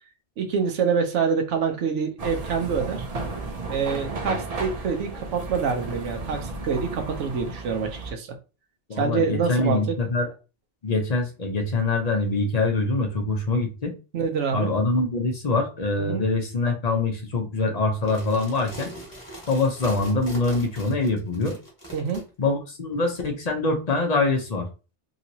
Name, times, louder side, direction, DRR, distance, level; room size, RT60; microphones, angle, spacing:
voice 1, 0.4-3.0 3.7-8.3 8.9-10.0 14.1-14.7 16.0-16.2 21.9-22.2, right 6 dB, 85° right, 4 dB, 1.0 m, -26 dB
sound 1, 2.2-8.1, right 3 dB, 45° right, 0.5 m, -33 dB
voice 2, 8.9-10.3 10.8-13.9 14.5-18.9 19.5-21.6 22.4-24.7, left 3 dB, 45° left, 2 dB, 0.6 m, -24 dB
sound 2, 17.9-22.2, right 1 dB, 20° left, 1.3 m, -41 dB
3.0 x 2.9 x 2.7 m, 0.31 s
omnidirectional pair, 1.2 m